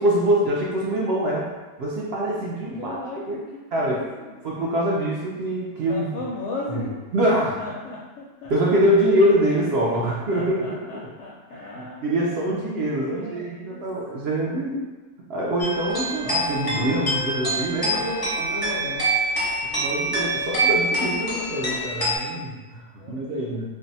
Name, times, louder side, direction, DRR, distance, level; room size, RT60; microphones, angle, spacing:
voice 1, 0.0-1.5 1.8-3.0 3.3-3.4 3.7-4.0 4.4-6.0 6.7-6.8 7.1-7.5 8.5-10.6 11.6-14.8 15.3-17.9 19.4-23.7, right 1 dB, 70° right, -4 dB, 0.6 m, -24 dB
voice 2, 2.8-4.4 5.9-7.0 7.6-9.1 10.0-12.1 13.0-13.8 17.8-19.1 23.0-23.7, left 2 dB, 70° left, -5 dB, 0.7 m, -36 dB
sound 1, 15.6-22.2, right 1 dB, 30° left, 0.4 m, -25 dB
2.6 x 2.2 x 3.9 m, 1.2 s
omnidirectional pair, 1.7 m